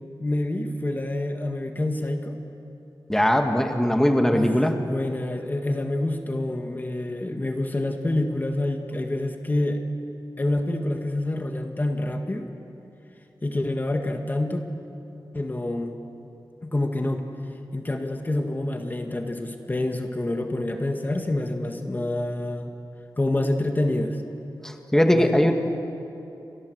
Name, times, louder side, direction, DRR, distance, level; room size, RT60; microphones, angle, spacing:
voice 1, 0.2-2.4 4.3-9.8 10.4-12.5 13.4-14.6 15.3-15.9 16.6-17.2 17.7-22.7 23.2-24.2 25.1-25.7, left 1 dB, 25° left, 4 dB, 1.8 m, -27 dB
voice 2, 3.1-4.8 24.6-25.6, equal, 5° left, 4 dB, 1.9 m, -20 dB
30.0 x 24.0 x 8.0 m, 2.8 s
wide cardioid pair, 115°, 7 cm